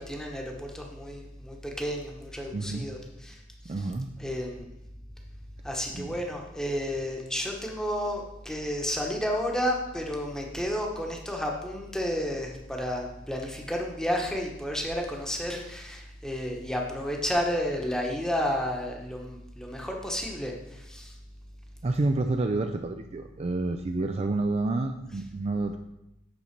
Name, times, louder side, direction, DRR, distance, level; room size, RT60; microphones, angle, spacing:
voice 1, 0.0-3.0 3.2-3.4 4.2-4.6 5.6-21.1, equal, 5° left, 0 dB, 1.0 m, -31 dB
voice 2, 2.5-2.9 3.6-4.1 5.9-6.1 21.8-25.8, right 2 dB, 35° right, 6 dB, 0.4 m, -29 dB
8.5 x 4.0 x 5.9 m, 0.91 s
head